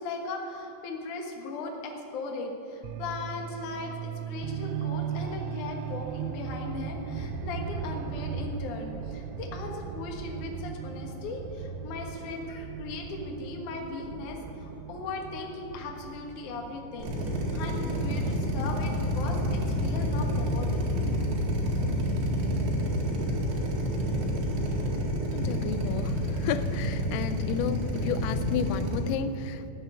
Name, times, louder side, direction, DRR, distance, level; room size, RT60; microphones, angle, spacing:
voice 1, 0.0-21.3, left 3 dB, 65° left, 1 dB, 2.0 m, -38 dB
sound 1, 2.8-19.2, right 6 dB, 85° right, 3.3 m, -38 dB
Drill, 17.0-29.0, equal, 60° right, 3.5 m, -28 dB
voice 2, 25.3-29.7, left 8 dB, 90° left, 12 dB, 3.3 m, -32 dB
15.0 x 7.8 x 9.5 m, 2.6 s
omnidirectional pair, 5.8 m